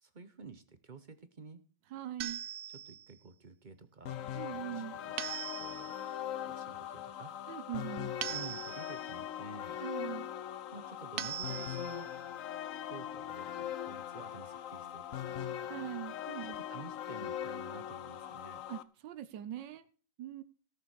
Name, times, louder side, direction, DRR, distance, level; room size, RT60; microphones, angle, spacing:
voice 1, 0.0-1.6 2.9-5.1 5.6-6.0 6.5-7.3 8.3-9.8 10.7-12.1 12.9-15.5 16.7-18.6, right 4 dB, 35° right, 11 dB, 0.9 m, -51 dB
voice 2, 1.9-2.4 4.3-5.0 7.5-8.1 9.8-10.3 15.7-16.6 18.7-19.8 20.2-20.4, right 11 dB, 90° right, 13 dB, 1.5 m, -42 dB
sound 1, 2.2-3.1 5.2-6.0 8.2-9.1 11.2-12.1, right 11 dB, 65° right, 1.2 m, -41 dB
sound 2, 4.1-18.8, left 10 dB, 60° left, 1.0 m, -41 dB
17.5 x 6.8 x 4.8 m, 0.41 s
omnidirectional pair, 1.9 m